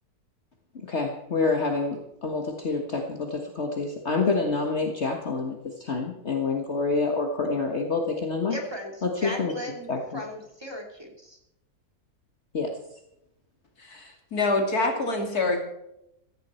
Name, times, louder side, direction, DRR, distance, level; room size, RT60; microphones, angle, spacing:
voice 1, 0.8-8.6 9.0-9.5 9.9-10.2 12.5-12.8, left 4 dB, 45° left, 2 dB, 1.9 m, -27 dB
voice 2, 8.5-8.9 9.2-11.4, equal, 15° right, 1 dB, 2.8 m, -37 dB
voice 3, 13.8-15.6, left 2 dB, 75° left, 3 dB, 3.2 m, -26 dB
16.0 x 16.0 x 4.5 m, 0.82 s
omnidirectional pair, 1.6 m